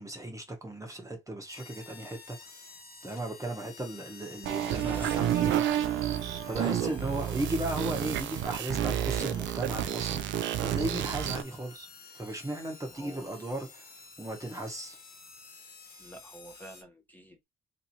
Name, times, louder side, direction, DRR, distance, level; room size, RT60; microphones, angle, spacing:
voice 1, 0.0-2.4 3.0-5.6 6.5-10.2 10.6-11.9 12.1-13.8 14.2-15.0, right 1 dB, 15° right, 1.0 m, -36 dB
sound 1, 1.5-16.8, left 4 dB, 50° left, 1.1 m, -51 dB
sound 2, 4.4-11.4, right 11 dB, 70° right, 0.4 m, -30 dB
voice 2, 6.5-7.5 12.9-13.3 16.0-17.4, right 1 dB, 10° left, 0.9 m, -47 dB
3.3 x 2.9 x 2.8 m
cardioid pair, 90°, 20 cm